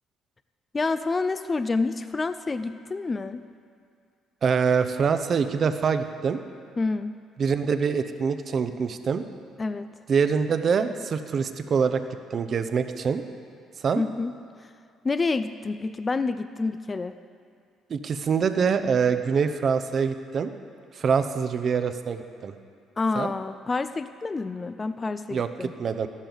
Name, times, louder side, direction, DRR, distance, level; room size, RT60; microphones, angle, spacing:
voice 1, 0.7-3.4 6.8-7.2 9.6-9.9 14.0-14.3 15.0-17.1 23.0-25.7, left 3 dB, 25° left, 11 dB, 0.4 m, -28 dB
voice 2, 4.4-6.4 7.4-9.2 10.1-12.0 12.3-13.2 13.8-14.0 17.9-20.5 21.0-22.5 23.2-23.3 25.3-25.5 25.8-26.1, right 6 dB, 50° right, 9 dB, 0.7 m, -24 dB
13.5 x 11.5 x 4.0 m, 2.3 s
cardioid pair, 90°, 0 cm